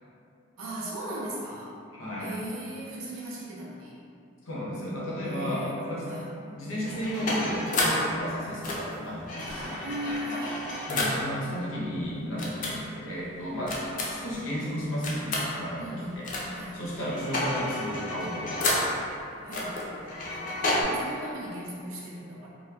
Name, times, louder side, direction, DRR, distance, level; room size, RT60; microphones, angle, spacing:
voice 1, 0.6-1.7 2.2-4.0 5.2-6.8 9.8-10.6 15.8-16.8 19.4-22.5, right 1 dB, 90° right, -5 dB, 0.6 m, -38 dB
voice 2, 1.9-2.4 4.5-6.2 6.6-9.8 10.9-16.3 16.7-19.0, equal, 80° left, -6 dB, 0.7 m, -33 dB
sound 1, 6.8-8.1 8.6-11.3 12.4-12.7 13.7-14.3 15.0-15.5 16.2-16.6 16.9-18.9 19.5-20.8, left 2 dB, 40° left, 0.3 m, -30 dB
sound 2, 9.5-10.4 11.9-12.0 12.4-12.5 12.7-12.8 13.8-15.2 15.7-15.8 16.1-16.2, equal, 55° right, 0.9 m, -44 dB
2.9 x 2.2 x 2.2 m, 2.5 s
head